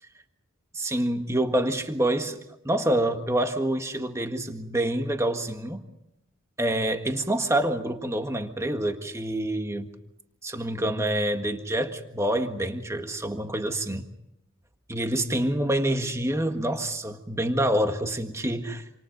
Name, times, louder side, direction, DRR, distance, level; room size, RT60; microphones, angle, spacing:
voice 1, 0.7-2.4 2.6-5.8 6.6-9.9 10.4-14.1 14.9-18.8, right 1 dB, 15° right, 6 dB, 1.6 m, -27 dB
28.0 x 27.0 x 5.3 m, 0.84 s
head